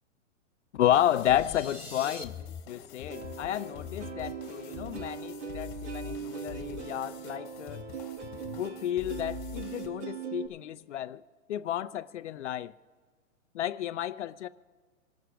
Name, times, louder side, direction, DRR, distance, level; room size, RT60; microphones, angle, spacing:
voice 1, 0.7-7.8 8.6-11.2 11.5-12.7 13.5-14.5, left 11 dB, 60° left, 0.6 m, -31 dB
sound 1, 0.9-9.9, left 9 dB, 20° left, 2.0 m, -45 dB
sound 2, 1.0-2.2, left 1 dB, 5° right, 0.5 m, -44 dB
Plucked string instrument, 3.1-10.5, right 6 dB, 65° right, 1.8 m, -40 dB
27.5 x 12.5 x 2.4 m
hypercardioid pair, 160°, 40 cm